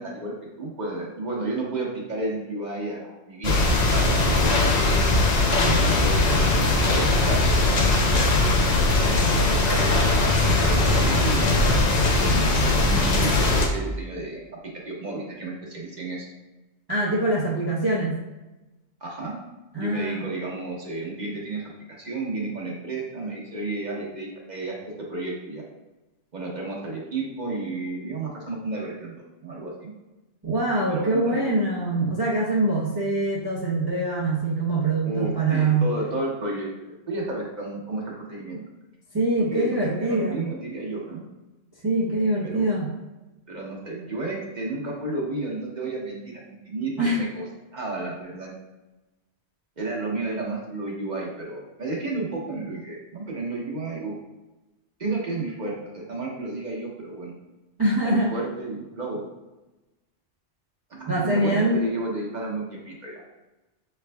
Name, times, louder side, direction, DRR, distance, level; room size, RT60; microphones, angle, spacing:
voice 1, 0.0-3.6 3.9-5.0 5.7-7.4 8.1-8.3 9.0-12.4 12.8-14.4 14.8-16.3 19.0-19.4 19.8-21.7 22.0-25.6 26.3-29.9 30.9-31.6 35.0-38.6 39.5-41.2 42.4-42.7 43.5-47.4 47.7-48.5 49.8-54.1 55.0-57.3 58.0-59.2 60.9-63.2, right 2 dB, 45° right, -3 dB, 1.0 m, -32 dB
sound 1, 3.4-13.7, left 2 dB, 45° left, 0.6 m, -20 dB
voice 2, 16.9-18.2 19.7-20.2 30.4-35.9 39.1-40.5 41.8-42.9 47.0-47.3 57.8-58.4 61.1-61.9, right 2 dB, 25° right, -6 dB, 0.6 m, -24 dB
6.0 x 3.3 x 2.2 m, 1.1 s
omnidirectional pair, 1.1 m